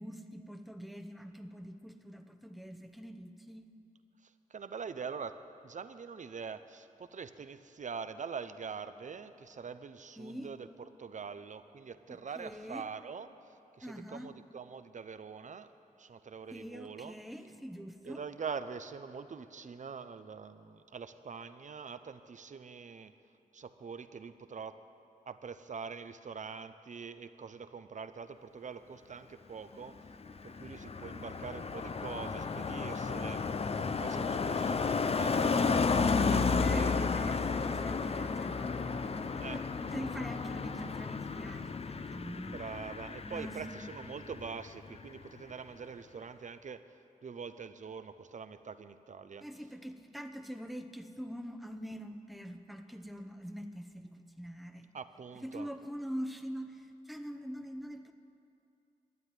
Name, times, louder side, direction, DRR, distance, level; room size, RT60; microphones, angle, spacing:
voice 1, 0.0-3.6 10.2-10.5 12.1-12.9 13.8-14.3 16.5-18.2 36.6-42.6 43.2-43.9 49.4-54.9 55.4-58.1, equal, ahead, 7 dB, 0.8 m, -44 dB
voice 2, 4.2-10.7 11.0-17.2 18.0-23.1 23.5-24.8 25.3-30.0 30.4-33.5 33.8-36.9 39.4-39.6 42.5-46.8 47.2-49.4 54.9-55.7, right 5 dB, 60° right, 11 dB, 0.6 m, -44 dB
Car passing by, 29.9-44.7 44.9-45.3, left 4 dB, 45° left, 0.5 m, -32 dB
12.0 x 9.3 x 9.7 m, 2.7 s
wide cardioid pair, 85°, 14 cm